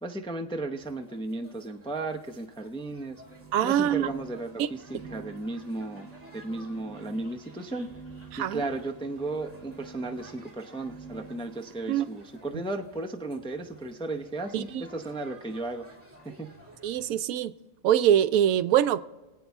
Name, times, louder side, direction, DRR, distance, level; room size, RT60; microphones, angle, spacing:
voice 1, 0.0-3.2 3.6-6.1 6.3-7.9 8.4-15.9 16.2-16.5, right 2 dB, 5° left, 0.4 m, -35 dB
sound 1, 0.7-17.2, right 1 dB, 10° right, 2.4 m, -55 dB
sound 2, 3.2-12.3, right 5 dB, 65° right, 1.3 m, -48 dB
voice 2, 3.5-4.1 4.6-4.7 8.3-8.6 11.9-12.1 14.5-14.8 16.8-17.5 17.8-19.0, right 10 dB, 80° right, 1.0 m, -24 dB
24.5 x 8.5 x 3.5 m
omnidirectional pair, 1.4 m